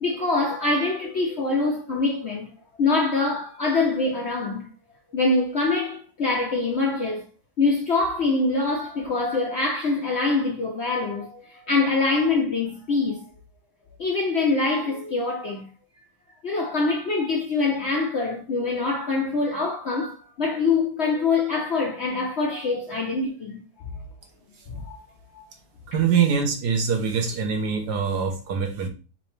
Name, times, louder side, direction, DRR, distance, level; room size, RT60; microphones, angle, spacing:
voice 1, 0.0-2.5 2.8-4.7 5.1-7.2 7.6-13.2 14.0-15.7 16.4-23.6 23.9-24.0 24.7-25.0 25.3-25.4, left 3 dB, 55° left, 0.8 m, -24 dB
voice 2, 25.9-28.9, right 6 dB, 70° right, 1.4 m, -24 dB
4.1 x 4.0 x 3.2 m
omnidirectional pair, 1.9 m